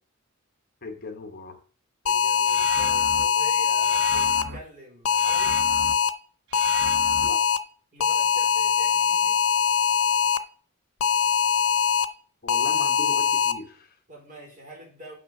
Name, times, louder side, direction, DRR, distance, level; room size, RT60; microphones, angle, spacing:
voice 1, 0.8-1.6 7.2-7.4 12.4-14.0, left 3 dB, 45° left, 6 dB, 1.1 m, -38 dB
voice 2, 2.0-5.6 7.9-9.4 14.1-15.1, equal, 40° right, 0 dB, 3.7 m, -44 dB
sound 1, 2.1-4.4 5.1-6.1 6.5-7.6 8.0-10.4 11.0-12.0 12.5-13.5, left 7 dB, 90° left, 0.6 m, -22 dB
sound 2, 2.5-3.2 3.8-4.6 5.2-5.9 6.5-7.3, right 3 dB, 60° right, 0.9 m, -37 dB
7.2 x 5.9 x 5.9 m, 0.42 s
head